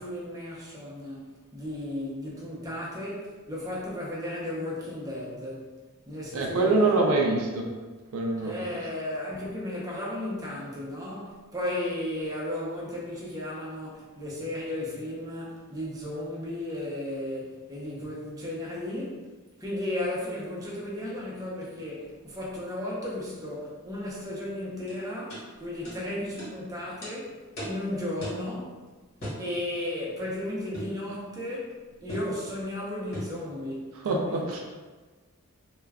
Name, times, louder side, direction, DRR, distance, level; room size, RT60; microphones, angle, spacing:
voice 1, 0.0-5.7 6.1-7.2 8.4-19.3 19.6-28.9 29.4-34.6, left 1 dB, 15° right, -5 dB, 0.6 m, -35 dB
voice 2, 6.3-7.7 8.1-8.7 34.0-34.6, right 3 dB, 70° right, 0 dB, 0.4 m, -25 dB
sound 1, 24.9-25.0 25.3-25.4 25.8-26.0 26.4-26.5 27.0-27.1 27.6-27.8 28.2-28.5 29.2-29.4 30.7-31.0 32.1-32.3 33.1-33.4, equal, 45° left, 1.3 m, -37 dB
2.2 x 2.2 x 3.3 m, 1.3 s
head